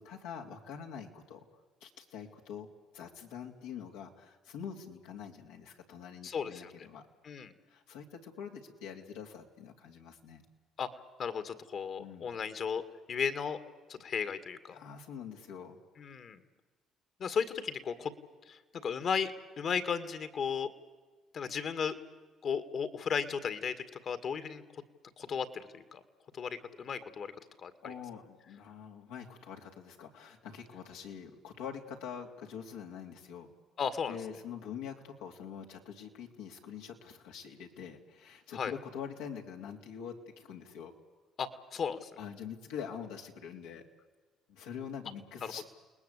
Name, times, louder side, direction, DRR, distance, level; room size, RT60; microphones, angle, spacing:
voice 1, 0.0-1.5 1.8-2.7 2.9-7.1 7.7-10.4 12.0-12.3 14.7-15.8 27.8-33.5 34.1-40.9 42.2-43.8 44.5-45.6, left 7 dB, 85° left, 1 dB, 3.1 m, -45 dB
voice 2, 6.2-6.9 7.2-7.5 10.8-10.9 11.2-12.8 13.1-13.6 13.9-14.8 16.0-16.4 17.2-18.1 18.5-20.7 21.3-22.0 22.4-24.8 25.2-26.0 26.3-27.3 27.6-27.9 33.8-34.2 38.5-38.7 41.4-42.1 45.4-45.5, left 6 dB, 55° left, 11 dB, 2.1 m, -35 dB
29.5 x 20.0 x 8.4 m, 1.3 s
supercardioid pair, 65°, 0 cm